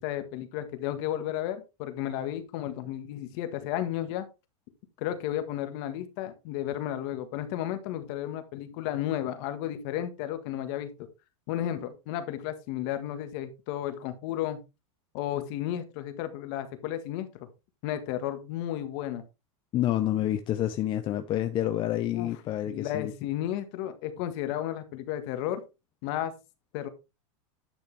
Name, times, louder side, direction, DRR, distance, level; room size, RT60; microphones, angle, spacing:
voice 1, 0.0-4.3 5.0-11.1 11.5-14.6 15.1-17.5 17.8-19.2 22.1-22.3 22.7-25.6 26.0-26.3 26.7-26.9, left 12 dB, 50° left, 1.7 m, -33 dB
voice 2, 19.7-23.1, left 12 dB, 30° left, 0.7 m, -28 dB
10.5 x 6.4 x 3.4 m
supercardioid pair, 145°, 17 cm